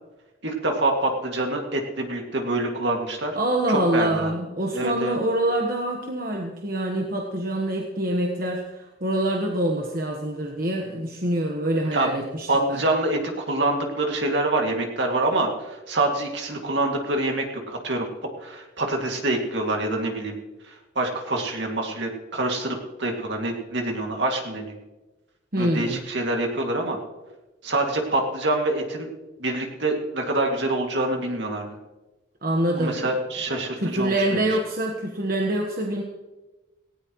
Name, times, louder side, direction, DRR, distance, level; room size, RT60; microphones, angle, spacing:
voice 1, 0.4-3.4 3.7-4.3 4.7-5.2 11.9-12.1 12.5-18.1 18.4-20.4 20.7-24.8 25.6-27.0 27.6-29.1 29.4-31.8 32.8-34.1, right 2 dB, 65° right, 2 dB, 2.3 m, -26 dB
voice 2, 3.3-12.8 25.5-26.0 32.4-33.1 33.8-36.0, right 1 dB, 45° right, 0 dB, 1.3 m, -25 dB
18.0 x 17.0 x 3.1 m, 1.1 s
head